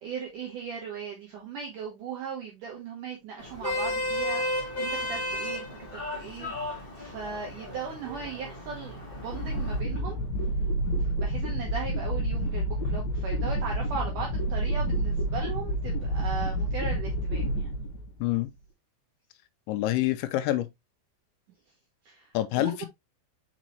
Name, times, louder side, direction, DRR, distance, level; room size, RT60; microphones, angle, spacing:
voice 1, 0.0-5.7 5.9-10.2 10.9-17.7 22.0-22.9, right 5 dB, 75° right, 1.9 m, -38 dB
Vehicle horn car horn honking, 3.4-9.8, left 1 dB, 25° left, 1.2 m, -34 dB
sound 1, 8.9-18.4, right 1 dB, 60° left, 2.8 m, -29 dB
voice 2, 19.7-20.7 22.3-22.9, left 15 dB, 80° left, 3.0 m, -26 dB
6.3 x 5.2 x 3.0 m
omnidirectional pair, 5.3 m